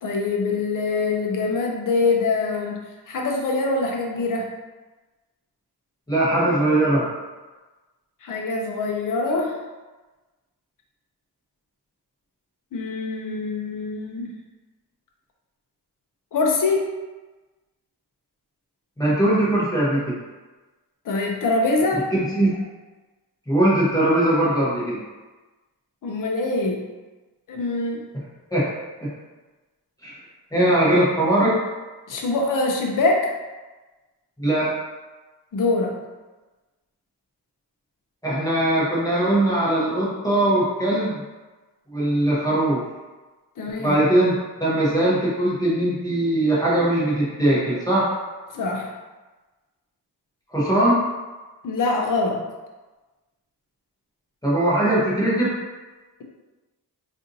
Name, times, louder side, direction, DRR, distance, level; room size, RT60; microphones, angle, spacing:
voice 1, 0.0-4.5 8.2-9.6 12.7-14.3 16.3-17.0 21.0-22.1 26.0-26.8 27.5-28.0 32.1-33.3 35.5-36.0 43.6-44.0 48.5-48.9 51.6-52.4, left 3 dB, 50° left, 0 dB, 0.6 m, -24 dB
voice 2, 6.1-7.1 19.0-20.2 21.9-22.6 23.5-25.0 28.5-28.7 29.0-29.1 30.0-30.2 30.5-31.6 34.4-34.7 38.2-41.2 41.9-42.8 43.8-48.1 50.5-51.0 54.4-55.5, right 1 dB, 10° left, -8 dB, 0.7 m, -20 dB
4.1 x 2.6 x 2.6 m, 1.2 s
wide cardioid pair, 175°, 42 cm